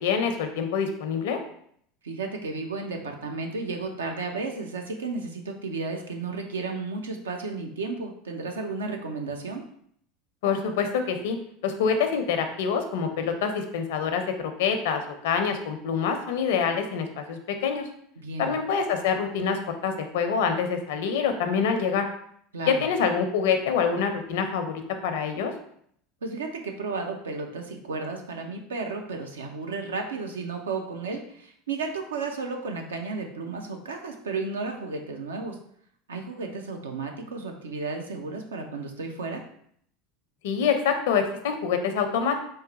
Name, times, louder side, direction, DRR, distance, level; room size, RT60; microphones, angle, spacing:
voice 1, 0.0-1.4 10.4-11.4 11.6-17.8 18.4-22.1 22.7-25.5 40.4-42.4, left 6 dB, 65° left, 6 dB, 0.5 m, -26 dB
voice 2, 2.0-9.6 18.2-18.5 22.5-22.8 26.2-35.6 36.1-39.4, right 4 dB, 80° right, 3 dB, 0.5 m, -33 dB
3.9 x 2.1 x 3.9 m, 0.66 s
figure-of-eight pair, 75°, 0 cm